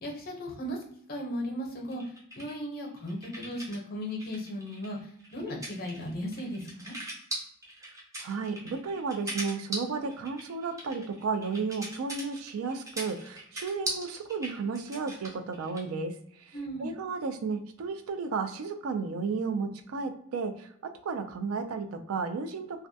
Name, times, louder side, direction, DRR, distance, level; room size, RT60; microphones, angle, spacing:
voice 1, 0.0-2.0 2.3-7.0 16.5-16.9, equal, 45° left, 0 dB, 0.6 m, -36 dB
sound 1, 1.9-3.8 4.1-15.9, right 1 dB, 15° right, 0.5 m, -40 dB
voice 2, 8.2-22.9, right 4 dB, 80° right, 7 dB, 0.4 m, -33 dB
2.3 x 2.1 x 2.6 m, 0.67 s
head